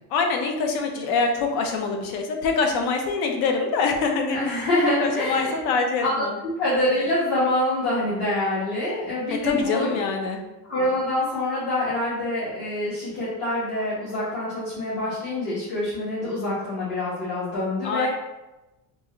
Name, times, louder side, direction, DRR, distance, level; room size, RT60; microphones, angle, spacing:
voice 1, 0.1-4.6 5.0-6.4 9.3-10.4 17.8-18.1, left 4 dB, 70° left, 4 dB, 0.7 m, -24 dB
voice 2, 4.3-5.6 6.0-6.2 6.6-9.9 10.7-18.1, left 1 dB, 55° left, -12 dB, 1.4 m, -25 dB
3.8 x 2.5 x 3.0 m, 1.0 s
cardioid pair, 165°, 39 cm